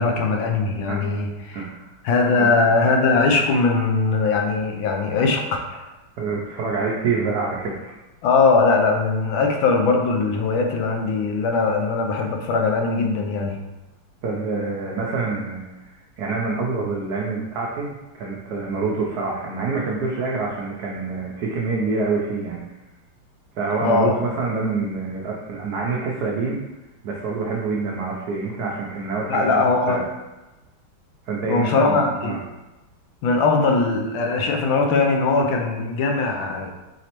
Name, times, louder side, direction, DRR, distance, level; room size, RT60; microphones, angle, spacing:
voice 1, 0.0-1.6 2.0-5.8 8.2-13.6 23.8-24.2 29.3-30.0 31.5-32.4 33.2-36.7, left 4 dB, 75° left, 2 dB, 1.3 m, -20 dB
voice 2, 1.5-1.9 2.3-2.5 6.2-7.9 14.2-22.6 23.6-26.6 27.0-30.0 31.3-32.4, right 4 dB, 85° right, -2 dB, 0.8 m, -26 dB
4.9 x 3.1 x 2.9 m, 1.1 s
omnidirectional pair, 2.3 m